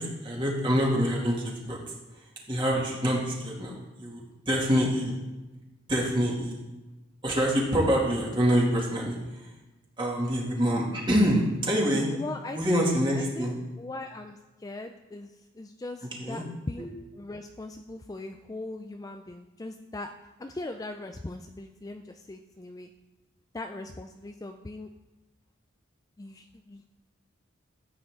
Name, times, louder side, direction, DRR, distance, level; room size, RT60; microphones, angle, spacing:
voice 1, 0.0-1.8 2.1-5.1 5.9-6.6 7.2-9.5 10.0-12.1 12.5-13.5 16.2-16.4, equal, 25° right, -3 dB, 2.3 m, -26 dB
voice 2, 12.1-16.9 17.2-20.1 20.4-22.9 23.5-24.9 26.2-26.9, left 2 dB, 15° left, 5 dB, 0.3 m, -40 dB
13.5 x 8.5 x 3.7 m, 1.1 s
head